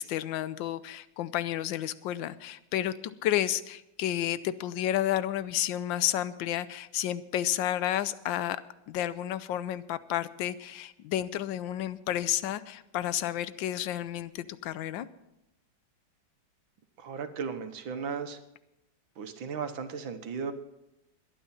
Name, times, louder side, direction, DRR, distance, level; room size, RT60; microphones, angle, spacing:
voice 1, 0.0-8.6 8.9-15.1, left 12 dB, 80° left, 15 dB, 1.4 m, -31 dB
voice 2, 17.0-18.4 19.2-20.5, right 6 dB, 80° right, 8 dB, 1.9 m, -36 dB
21.5 x 9.2 x 4.3 m, 0.88 s
omnidirectional pair, 2.1 m